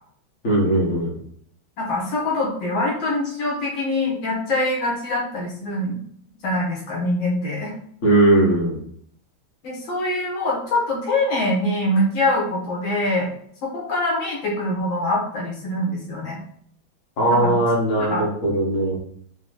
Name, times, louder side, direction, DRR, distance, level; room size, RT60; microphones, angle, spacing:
voice 1, 0.4-1.2 8.0-8.8 17.2-19.0, right 1 dB, 45° left, -4 dB, 1.6 m, -19 dB
voice 2, 1.8-6.0 6.4-7.7 9.6-13.3 13.6-16.4 17.3-18.3, left 1 dB, 70° left, -4 dB, 1.9 m, -24 dB
4.8 x 2.2 x 3.8 m, 0.64 s
omnidirectional pair, 2.2 m